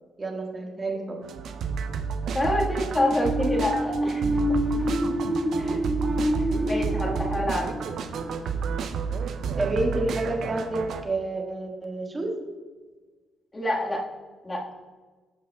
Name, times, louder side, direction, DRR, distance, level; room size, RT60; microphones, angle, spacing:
voice 1, 0.2-1.2 9.6-12.4, right 2 dB, 25° right, 1 dB, 1.6 m, -29 dB
sound 1, 1.2-11.0, right 6 dB, 70° right, 0.5 m, -30 dB
voice 2, 2.3-4.3 5.6-5.8 6.7-7.7 13.5-14.0 14.4-14.6, left 1 dB, 25° left, -2 dB, 1.5 m, -27 dB
sound 2, 2.9-8.6, equal, 5° left, 1.1 m, -28 dB
13.0 x 5.4 x 2.3 m, 1.3 s
cardioid pair, 90°, 0 cm